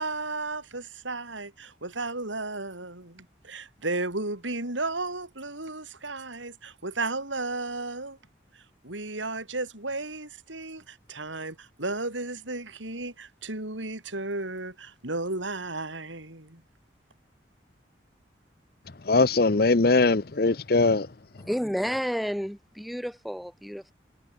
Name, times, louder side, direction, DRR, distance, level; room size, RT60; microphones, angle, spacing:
voice 1, 0.0-8.2 8.5-16.6, right 2 dB, 85° right, 6.1 m, -34 dB
voice 2, 19.1-21.1, left 3 dB, 50° left, 0.8 m, -21 dB
voice 3, 21.4-23.9, equal, ahead, 3.4 m, -31 dB
head